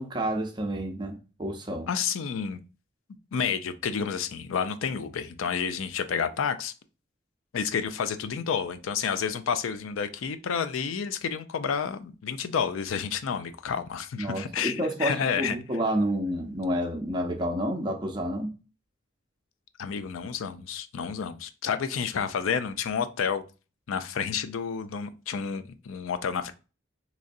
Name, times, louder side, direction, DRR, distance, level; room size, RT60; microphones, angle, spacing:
voice 1, 0.0-1.9 14.2-18.5, equal, 20° right, 0.6 m, -29 dB
voice 2, 1.9-2.6 3.3-6.7 7.5-15.6 19.8-23.4 23.9-26.5, left 6 dB, 90° left, 0.4 m, -30 dB
3.7 x 3.0 x 2.6 m
head